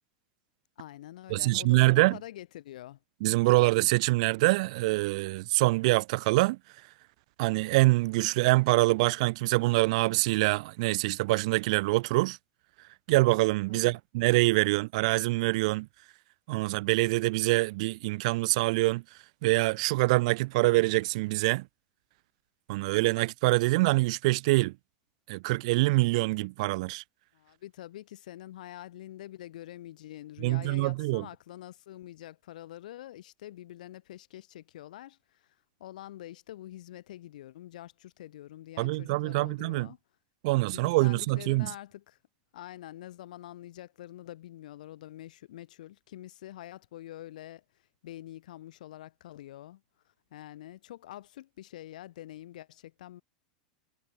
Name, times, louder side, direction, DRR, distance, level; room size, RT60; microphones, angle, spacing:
voice 1, 0.8-3.0 13.7-14.0 27.3-40.0 40.7-42.2 42.5-47.6 48.0-49.8 50.3-53.2, left 14 dB, 80° left, 6.7 m, -46 dB
voice 2, 1.3-2.2 3.2-6.6 7.4-12.4 13.1-15.9 16.5-19.0 19.4-21.7 22.7-24.7 25.3-27.0 30.4-31.3 38.8-39.9 40.4-41.7, right 22 dB, 55° right, 0.7 m, -25 dB
supercardioid pair, 160°, 4 cm